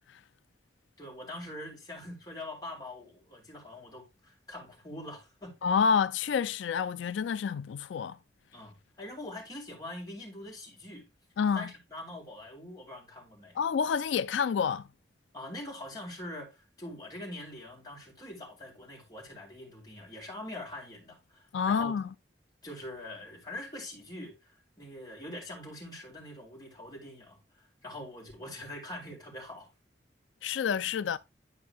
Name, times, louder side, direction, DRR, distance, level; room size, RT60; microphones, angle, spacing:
voice 1, 1.0-5.6 8.5-11.1 11.5-13.6 15.3-22.0 22.6-29.7, left 1 dB, 20° left, 3.4 m, -44 dB
voice 2, 5.6-8.2 11.4-11.7 13.6-14.9 21.5-22.1 30.4-31.2, left 6 dB, 90° left, 0.3 m, -28 dB
10.5 x 4.6 x 3.4 m
head